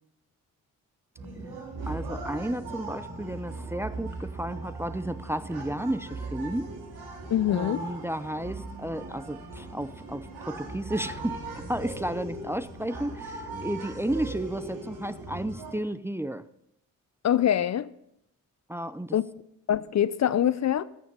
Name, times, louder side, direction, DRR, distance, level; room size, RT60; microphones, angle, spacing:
sound 1, 1.2-15.7, right 3 dB, 85° right, 2.5 m, -40 dB
sound 2, 1.7-15.6, right 1 dB, 70° right, 3.6 m, -46 dB
voice 1, 1.9-6.7 7.5-16.4 18.7-19.2, right 1 dB, 5° right, 0.6 m, -33 dB
voice 2, 7.3-7.9 17.2-17.9 19.1-19.2 19.7-20.8, left 10 dB, 50° left, 0.6 m, -24 dB
13.5 x 7.4 x 5.3 m
supercardioid pair, 50°, 35 cm